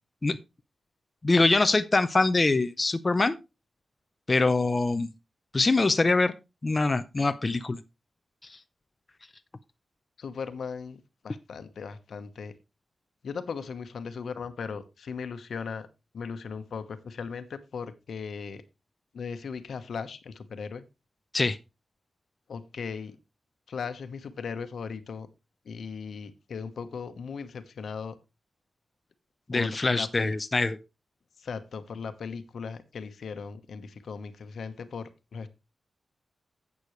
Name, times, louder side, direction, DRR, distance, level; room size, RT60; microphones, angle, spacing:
voice 1, 1.2-3.4 4.3-5.1 5.5-6.3 6.6-7.8 21.3-21.6 29.5-30.8, left 3 dB, 25° left, 10 dB, 0.6 m, -24 dB
voice 2, 10.2-12.6 13.2-15.9 16.1-18.6 19.1-20.9 22.5-23.2 23.7-25.3 25.6-28.2 29.5-30.3 31.4-35.5, left 5 dB, 75° left, 10 dB, 1.1 m, -38 dB
11.5 x 8.3 x 3.1 m, 0.25 s
wide cardioid pair, 150°, 0 cm